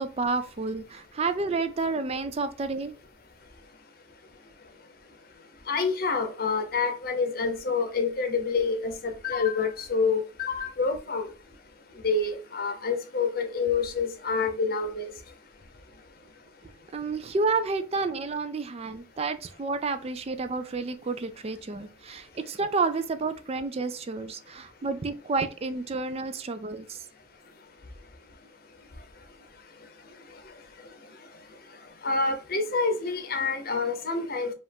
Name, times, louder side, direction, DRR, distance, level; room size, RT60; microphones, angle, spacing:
voice 1, 0.0-2.9 16.9-27.0, right 3 dB, 35° right, 0.4 m, -30 dB
voice 2, 5.7-11.3 12.0-15.1 32.0-34.5, left 4 dB, 55° left, 0.8 m, -27 dB
5.0 x 2.4 x 3.5 m
head